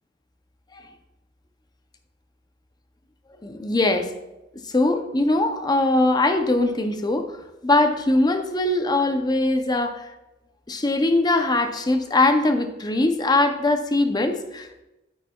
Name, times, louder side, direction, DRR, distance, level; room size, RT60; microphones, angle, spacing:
voice 1, 3.4-4.1 4.7-7.3 7.6-10.1 10.7-14.8, left 2 dB, 20° left, 7 dB, 0.6 m, -21 dB
10.0 x 8.6 x 2.3 m, 0.97 s
head